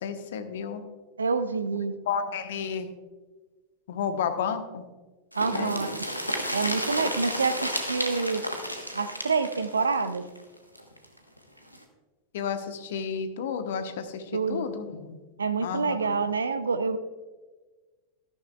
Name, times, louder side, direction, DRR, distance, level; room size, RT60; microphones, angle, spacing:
voice 1, 0.0-0.8 2.1-2.9 3.9-4.8 5.5-6.0 12.3-15.2 15.6-16.0, left 7 dB, 60° left, 8 dB, 1.0 m, -32 dB
voice 2, 1.2-2.0 5.4-6.0 6.5-8.4 8.9-10.3 14.3-14.7 15.4-17.0, right 4 dB, 75° right, 12 dB, 0.6 m, -27 dB
sound 1, 5.3-11.1 11.4-11.5 11.7-11.8, equal, 90° left, 1.1 m, -32 dB
13.0 x 12.0 x 2.3 m, 1.3 s
figure-of-eight pair, 90°, 0 cm